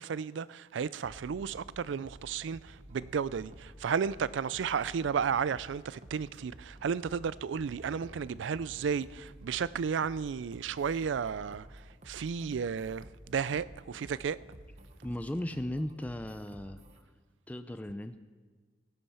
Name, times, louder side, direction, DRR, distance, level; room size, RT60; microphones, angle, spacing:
voice 1, 0.0-14.4, right 6 dB, 75° right, 0.4 m, -33 dB
sound 1, 1.0-17.0, right 1 dB, 40° right, 1.1 m, -52 dB
voice 2, 15.0-16.8 17.5-18.2, left 1 dB, 10° left, 0.4 m, -36 dB
15.5 x 10.0 x 5.6 m
head